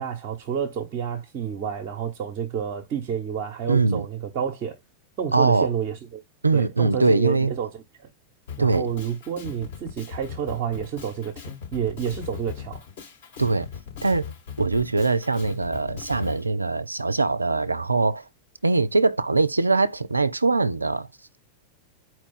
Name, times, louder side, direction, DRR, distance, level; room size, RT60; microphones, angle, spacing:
voice 1, 0.0-4.8 5.2-6.2 6.5-8.1 8.6-12.8, right 8 dB, 40° right, 0.9 m, -30 dB
voice 2, 3.7-4.0 5.3-5.7 6.4-7.5 8.6-8.9 13.4-13.7 14.0-14.3 14.6-18.3 18.6-21.1, right 3 dB, 80° right, 0.3 m, -22 dB
Drum kit, 8.5-16.4, left 7 dB, 60° left, 3.2 m, -39 dB
4.4 x 2.3 x 4.0 m
figure-of-eight pair, 90°, 0 cm